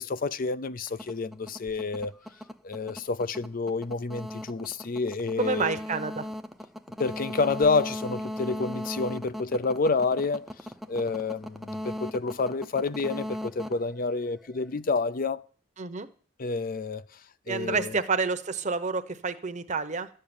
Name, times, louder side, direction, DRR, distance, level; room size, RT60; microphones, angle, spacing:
voice 1, 0.0-2.1 2.6-5.7 7.0-10.5 10.9-15.4 16.4-17.0 17.5-18.0, left 4 dB, 45° left, 0.5 m, -29 dB
sound 1, 0.9-14.7, left 1 dB, ahead, 0.6 m, -38 dB
voice 2, 5.4-6.3 15.8-16.1 17.5-20.1, right 4 dB, 35° right, 1.0 m, -29 dB
13.0 x 6.7 x 8.9 m
head